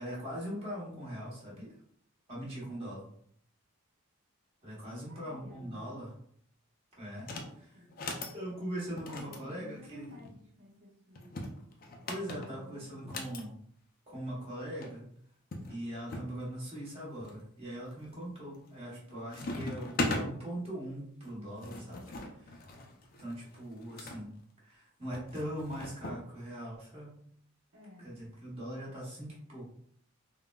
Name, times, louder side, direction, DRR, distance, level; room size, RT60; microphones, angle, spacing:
voice 1, 0.0-1.7 2.3-3.0 4.6-6.1 7.0-7.3 8.3-10.2 12.1-13.6 14.1-15.1 15.7-22.0 22.3-22.6 23.2-24.3 24.6-27.2 28.0-29.7, equal, 25° right, -5 dB, 0.9 m, -41 dB
voice 2, 4.9-6.0 7.2-7.9 9.1-11.6 12.3-13.3 18.9-20.3 27.7-28.2, left 1 dB, 60° right, -3 dB, 0.9 m, -54 dB
sound 1, 7.2-7.5 7.9-8.4 9.0-10.4 11.2-13.4 14.5-14.6 14.8-14.9 15.5-16.3 16.9-17.4 17.9-18.3 18.6-19.0 19.3-20.3 21.2-24.2 25.1-26.2, left 2 dB, 40° left, 0.4 m, -39 dB
3.5 x 2.0 x 2.2 m, 0.64 s
head